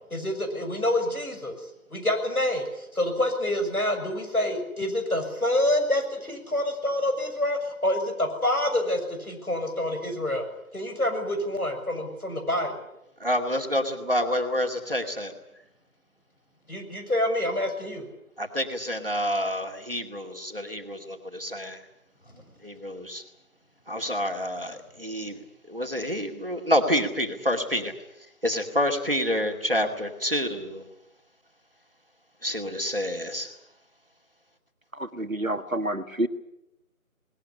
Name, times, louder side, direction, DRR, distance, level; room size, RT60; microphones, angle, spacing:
voice 1, 0.1-1.6 1.9-10.5 10.7-12.7 16.7-18.1, left 1 dB, 75° left, 5 dB, 6.7 m, -27 dB
voice 2, 13.2-15.3 18.4-21.8 22.6-23.2 23.9-25.4 25.7-27.9 28.4-30.8 32.4-33.5, equal, 40° right, 4 dB, 2.4 m, -28 dB
voice 3, 34.9-36.3, right 1 dB, 65° right, 9 dB, 1.9 m, -28 dB
20.0 x 19.0 x 9.9 m, 0.85 s
figure-of-eight pair, 175°, 44 cm